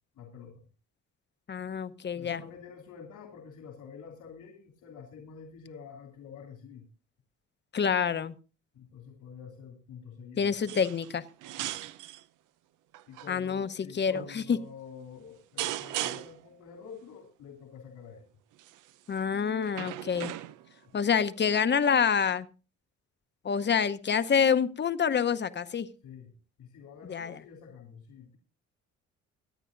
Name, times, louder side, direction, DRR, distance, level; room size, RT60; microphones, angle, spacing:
voice 1, 0.1-0.7 2.2-6.9 8.7-10.5 11.6-11.7 13.1-18.2 26.0-28.4, left 6 dB, 90° left, 2 dB, 2.9 m, -48 dB
voice 2, 1.5-2.4 7.7-8.3 10.4-11.2 13.3-13.7 14.0-14.6 19.1-20.3 20.9-22.5 23.4-25.9 27.1-27.3, left 7 dB, 35° left, 12 dB, 0.8 m, -27 dB
sound 1, 10.7-11.1 11.4-12.2 12.9-13.3 14.1-14.4 15.6-16.5 18.6-18.9 19.7-20.8 21.8-21.9, right 14 dB, 90° right, 0.6 m, -37 dB
24.5 x 9.0 x 2.6 m, 0.35 s
cardioid pair, 90°, 30 cm